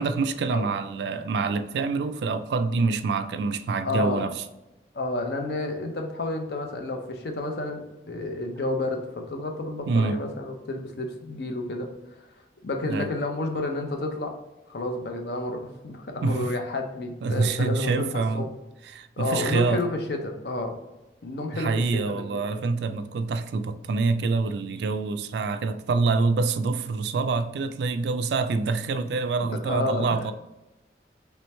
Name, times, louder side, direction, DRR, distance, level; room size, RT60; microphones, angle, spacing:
voice 1, 0.0-4.4 9.9-10.2 12.9-13.1 16.2-16.6 17.2-18.5 18.9-19.8 21.5-30.3, right 4 dB, 75° right, 0.3 m, -26 dB
voice 2, 3.8-4.2 4.9-11.9 12.6-14.4 14.7-18.1 18.3-18.5 19.2-20.8 21.2-22.4 29.7-30.1, left 2 dB, 65° left, 0.6 m, -30 dB
3.3 x 3.0 x 3.1 m
head